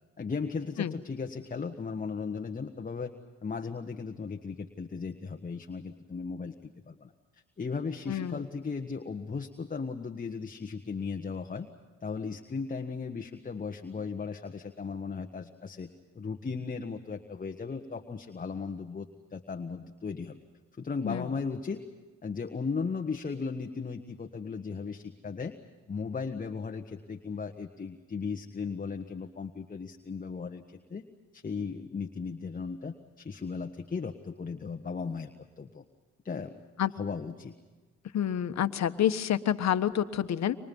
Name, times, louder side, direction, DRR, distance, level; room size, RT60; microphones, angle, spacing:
voice 1, 0.2-3.1 3.4-11.7 12.0-20.4 20.8-21.8 22.2-25.6 25.9-31.0 31.3-35.8 36.2-36.6 36.9-37.5, left 5 dB, 30° left, 5 dB, 1.4 m, -36 dB
voice 2, 38.1-40.6, left 10 dB, 60° left, 9 dB, 1.4 m, -28 dB
30.0 x 25.5 x 5.5 m, 1.3 s
cardioid pair, 90°, 30 cm